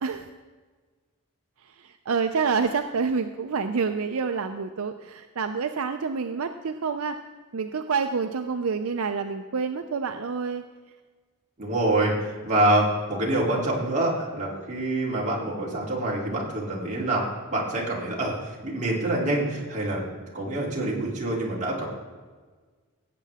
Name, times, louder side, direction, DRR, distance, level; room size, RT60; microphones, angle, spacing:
voice 1, 0.0-0.3 1.6-7.2 7.5-10.6, right 5 dB, 70° right, 7 dB, 0.5 m, -28 dB
voice 2, 11.6-12.1 12.4-20.0 20.3-21.9, right 1 dB, 35° right, -4 dB, 2.9 m, -26 dB
17.0 x 8.3 x 3.5 m, 1.4 s
head